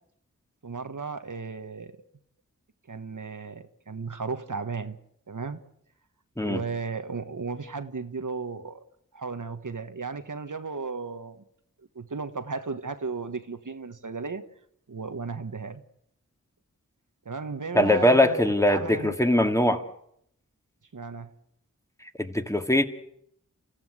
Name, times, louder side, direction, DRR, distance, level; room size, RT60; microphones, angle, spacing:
voice 1, 0.6-1.9 2.9-5.0 5.3-5.6 6.4-8.8 9.1-11.4 11.8-14.4 14.9-15.8 17.2-19.3 20.9-21.3, right 4 dB, 70° right, 1.5 m, -35 dB
voice 2, 17.7-19.8 22.2-22.8, left 1 dB, 10° left, 2.2 m, -21 dB
29.5 x 15.0 x 8.2 m
wide cardioid pair, 40°, 32 cm